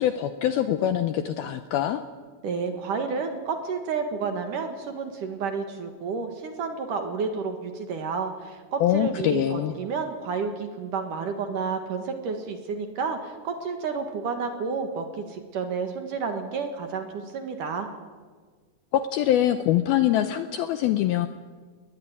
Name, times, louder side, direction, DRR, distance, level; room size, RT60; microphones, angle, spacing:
voice 1, 0.0-2.0 8.8-9.8 18.9-21.3, left 11 dB, 75° left, 10 dB, 2.3 m, -24 dB
voice 2, 2.4-17.9, right 5 dB, 55° right, 6 dB, 2.7 m, -30 dB
21.5 x 20.0 x 9.7 m, 1.5 s
omnidirectional pair, 5.2 m